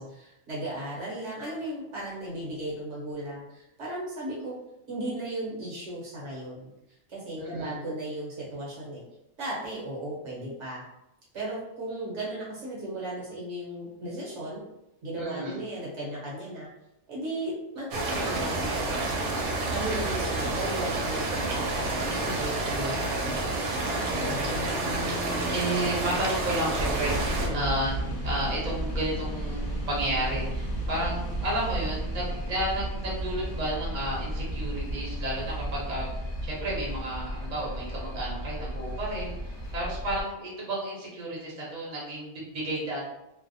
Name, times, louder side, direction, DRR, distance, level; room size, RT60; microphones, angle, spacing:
voice 1, 0.0-4.6 4.9-6.7 7.1-9.0 9.4-10.8 11.3-14.6 15.0-16.7 17.1-19.3 19.7-23.5 24.1-24.6 27.4-27.7, right 1 dB, 60° right, -5 dB, 1.0 m, -36 dB
voice 2, 7.4-7.8 15.2-15.6 24.2-36.1 36.4-43.1, right 1 dB, 40° right, -5 dB, 0.8 m, -32 dB
sound 1, 17.9-27.5, right 2 dB, 85° right, 1.1 m, -29 dB
sound 2, 26.7-40.2, right 1 dB, 60° left, 0.4 m, -33 dB
2.6 x 2.1 x 2.6 m, 0.90 s
omnidirectional pair, 1.5 m